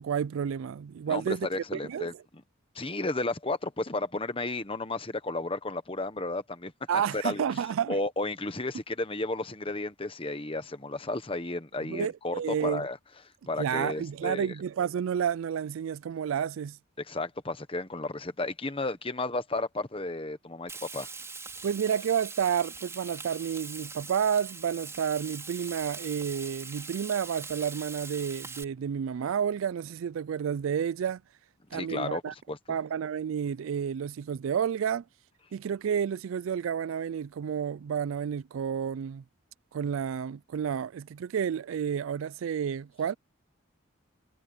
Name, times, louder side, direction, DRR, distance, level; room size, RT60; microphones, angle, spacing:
voice 1, 0.0-2.1 6.9-8.0 11.8-12.9 13.6-16.8 21.6-31.2 31.7-32.3 32.7-35.0 35.5-39.2 39.7-43.1, right 8 dB, 75° right, 0.3 m, -30 dB
voice 2, 1.1-2.4 2.7-7.4 7.9-13.0 13.5-14.5 17.0-21.1 31.7-32.8, left 2 dB, 25° left, 1.2 m, -33 dB
Frying (food), 20.7-28.6, right 4 dB, 15° right, 5.2 m, -42 dB
head